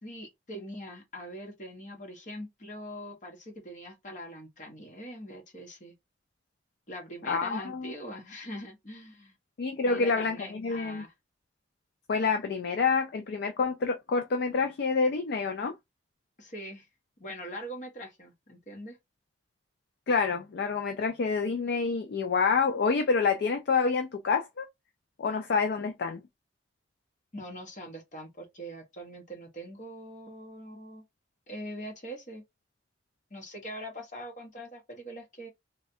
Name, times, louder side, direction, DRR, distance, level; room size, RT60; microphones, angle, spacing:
voice 1, 0.0-5.9 6.9-9.4 9.8-11.1 16.4-16.9 17.2-19.0 27.3-31.0 31.5-32.4 33.3-35.5, equal, 45° left, 1.1 m, -42 dB
voice 2, 7.3-7.9 9.6-11.0 12.1-15.7 20.1-24.7 25.2-26.2, left 4 dB, 60° left, 0.4 m, -27 dB
3.2 x 2.2 x 2.6 m
head